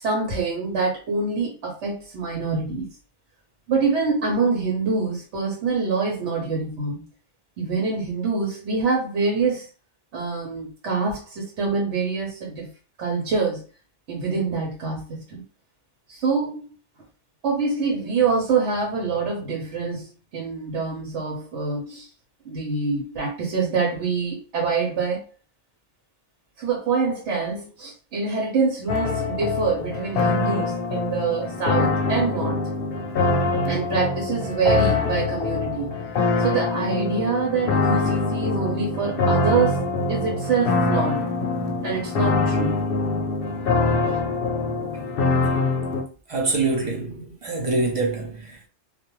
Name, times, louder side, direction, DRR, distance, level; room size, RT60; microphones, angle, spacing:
voice 1, 0.0-2.9 3.7-7.0 7.6-9.7 10.1-12.7 13.0-13.6 14.1-15.4 16.1-16.6 17.4-22.1 22.4-25.2 26.6-32.6 33.6-35.9 36.4-41.3 41.8-42.8 44.0-44.2, right 4 dB, 80° right, 1.0 m, -25 dB
sound 1, 28.9-46.0, left 3 dB, 60° left, 0.7 m, -24 dB
voice 2, 46.3-48.7, right 3 dB, 40° right, 0.5 m, -25 dB
2.5 x 2.1 x 2.9 m
omnidirectional pair, 1.2 m